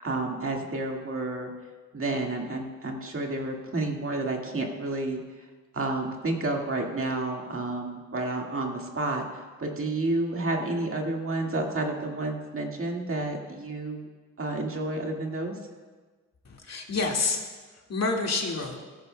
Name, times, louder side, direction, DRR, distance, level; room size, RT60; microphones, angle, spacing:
voice 1, 0.0-1.5 1.9-5.2 5.7-14.0 14.4-15.6, right 2 dB, 40° right, 1 dB, 1.8 m, -30 dB
voice 2, 16.5-17.4 17.9-18.8, left 3 dB, 50° left, 1 dB, 1.9 m, -28 dB
16.0 x 14.0 x 2.2 m, 1.4 s
cardioid pair, 70°, 34 cm